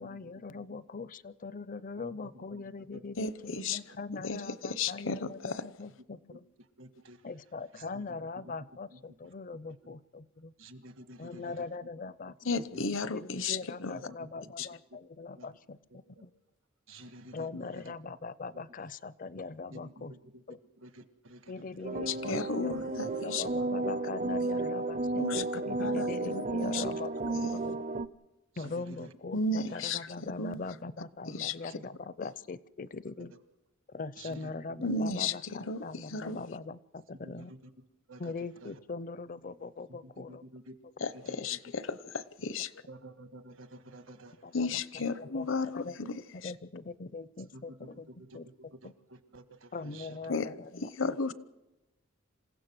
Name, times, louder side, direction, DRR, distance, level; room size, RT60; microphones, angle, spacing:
voice 1, 0.0-6.4 7.2-10.5 11.2-16.3 17.3-20.1 20.5-20.6 21.5-27.8 28.6-33.3 33.9-37.5 38.2-40.4 41.4-41.5 44.4-45.5 45.7-46.0 46.3-48.1 48.3-48.5 48.8-48.9 49.7-51.1, left 4 dB, 40° left, 0.6 m, -41 dB
voice 2, 2.0-2.6 2.9-3.0 6.3-6.4 6.8-7.2 7.7-8.1 8.4-8.5 8.9-9.2 9.8-9.9 10.6-11.7 14.1-14.2 14.5-14.6 15.4-15.5 16.1-16.2 16.9-17.9 19.7-21.5 21.8-21.9 28.5-29.1 30.6-30.7 33.2-33.3 34.2-34.5 34.8-35.0 37.4-37.7 38.1-38.3 38.6-38.8 39.9-40.8 41.0-41.6 42.9-44.4 47.5-48.4 48.7-50.2, right 1 dB, 75° right, 1.6 m, -51 dB
voice 3, 3.2-3.8 4.2-5.6 12.4-13.9 14.6-14.7 22.1-23.4 25.2-25.4 25.8-26.8 27.4-27.5 29.3-30.6 31.3-31.6 34.8-36.4 41.0-42.7 44.5-46.5 50.3-50.5 50.8-51.3, left 4 dB, 70° left, 0.9 m, -34 dB
sound 1, 21.8-28.1, right 2 dB, 40° right, 0.6 m, -33 dB
27.0 x 16.0 x 6.1 m
head